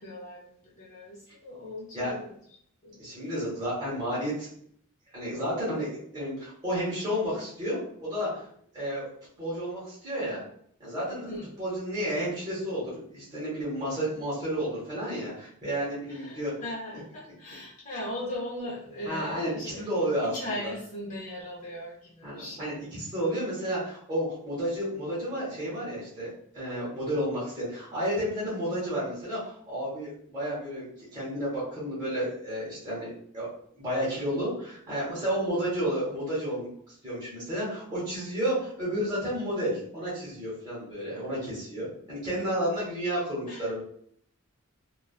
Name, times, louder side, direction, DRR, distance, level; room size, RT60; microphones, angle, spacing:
voice 1, 0.0-2.4 2.8-3.0 11.2-11.5 16.1-19.9 20.2-22.9 42.5-42.8 43.5-43.7, left 1 dB, 35° left, -6 dB, 0.5 m, -39 dB
voice 2, 3.0-4.5 5.1-8.4 8.7-9.1 9.4-10.4 10.8-11.3 11.6-16.5 19.1-20.3 20.6-20.7 22.2-30.8 31.1-33.5 33.8-36.7 37.0-43.8, equal, 20° right, -9 dB, 1.1 m, -31 dB
2.3 x 2.3 x 2.3 m, 0.63 s
head